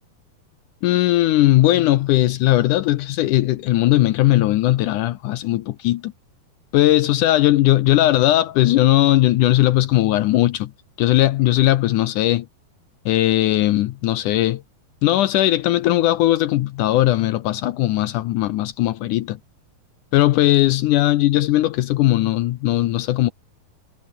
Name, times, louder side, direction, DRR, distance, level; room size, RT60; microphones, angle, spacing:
voice 1, 0.8-6.1 6.7-10.7 11.0-12.5 13.1-14.6 15.0-19.4 20.1-23.3, left 15 dB, 75° left, 1.9 m, -18 dB
omnidirectional pair, 4.3 m